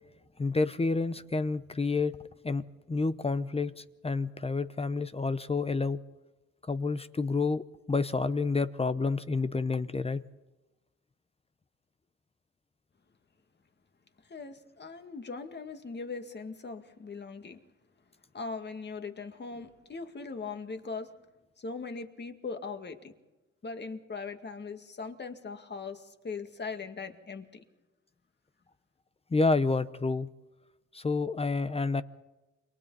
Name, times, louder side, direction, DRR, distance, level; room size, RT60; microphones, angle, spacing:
voice 1, 0.4-2.2 2.4-6.0 6.6-10.2 29.3-30.3 30.9-32.0, left 3 dB, 20° left, 0.7 m, -29 dB
voice 2, 14.2-17.6 18.3-21.1 21.6-23.1 23.6-27.6, left 4 dB, 35° left, 2.1 m, -40 dB
28.5 x 23.0 x 4.1 m
cardioid pair, 90°, 30 cm